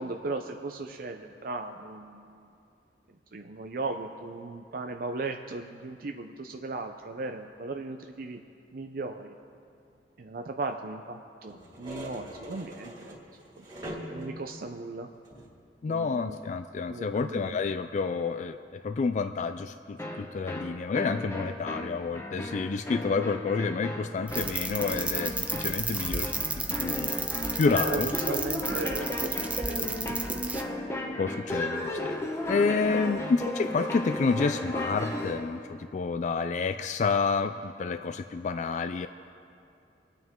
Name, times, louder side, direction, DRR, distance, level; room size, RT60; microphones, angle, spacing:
voice 1, 0.0-2.5 3.1-8.4 8.7-9.3 10.2-13.2 13.6-13.7 14.1-15.1 15.9-16.4 16.9-17.6 27.9-28.0 28.3-30.2, right 3 dB, 55° right, 5 dB, 0.5 m, -37 dB
sound 1, 11.5-14.6 15.2-15.6 16.3-16.5, equal, 25° right, 2.6 m, -42 dB
voice 2, 15.8-26.3 26.8-27.2 27.6-28.1 31.2-39.1, left 4 dB, 40° left, 9 dB, 0.3 m, -29 dB
sound 2, 20.0-35.5, left 1 dB, 15° left, 1.1 m, -35 dB
sound 3, 24.3-30.6, right 3 dB, 10° right, 0.6 m, -33 dB
25.5 x 9.1 x 3.6 m, 2.5 s
head